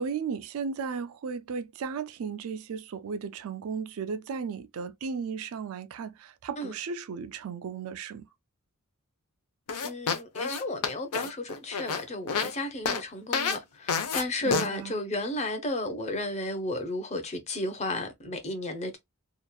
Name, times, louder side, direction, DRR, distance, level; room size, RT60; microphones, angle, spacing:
voice 1, 0.0-8.3 14.4-15.0, right 6 dB, 70° right, 0.4 m, -35 dB
sound 1, 9.7-12.5 12.9-13.0 13.3-13.6 13.9-14.2 14.5-14.7, left 5 dB, 90° left, 0.6 m, -29 dB
voice 2, 9.8-19.0, left 1 dB, 30° left, 0.7 m, -33 dB
2.9 x 2.3 x 2.2 m
head